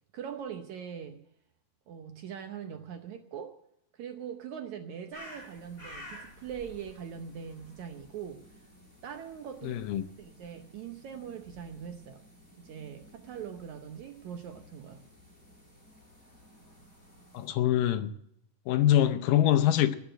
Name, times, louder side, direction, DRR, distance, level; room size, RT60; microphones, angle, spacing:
voice 1, 0.1-1.3 1.9-3.6 3.9-8.7 9.0-9.8 10.2-12.2 12.6-15.0, right 8 dB, 70° right, 6 dB, 1.9 m, -42 dB
sound 1, 5.1-17.5, left 1 dB, 20° left, 8.3 m, -53 dB
voice 2, 9.6-10.0 17.3-18.1 18.7-20.0, left 11 dB, 75° left, 10 dB, 2.3 m, -24 dB
20.0 x 7.1 x 8.9 m, 0.76 s
omnidirectional pair, 4.2 m